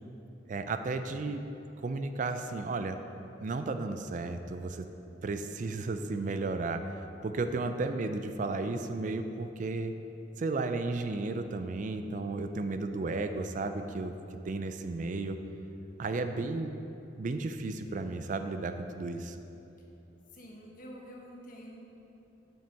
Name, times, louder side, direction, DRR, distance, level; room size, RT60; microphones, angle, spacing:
voice 1, 0.5-1.4 1.8-3.0 3.4-4.9 5.2-6.9 7.2-9.9 10.4-14.1 14.5-15.4 16.0-16.7 17.2-19.4, right 3 dB, 45° right, 8 dB, 0.4 m, -33 dB
voice 2, 20.3-21.8, equal, 50° left, -1 dB, 1.3 m, -47 dB
7.2 x 6.0 x 5.8 m, 2.9 s
head